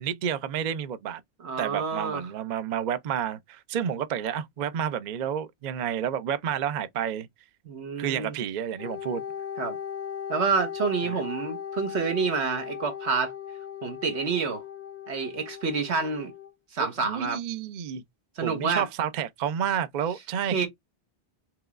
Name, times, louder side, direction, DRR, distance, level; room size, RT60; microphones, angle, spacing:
voice 1, 0.0-1.2 1.6-7.3 8.0-9.2 11.0-11.2 16.8-18.0 18.4-20.7, right 8 dB, 55° right, 0.5 m, -30 dB
voice 2, 1.4-2.2 7.6-8.4 9.6-9.8 10.3-13.3 13.8-14.6 15.1-16.3 16.7-17.4 18.4-18.8 20.5-20.7, right 5 dB, 80° right, 1.4 m, -28 dB
Wind instrument woodwind instrument, 8.8-16.5, left 8 dB, 85° left, 1.2 m, -37 dB
4.7 x 3.0 x 2.4 m
omnidirectional pair, 1.1 m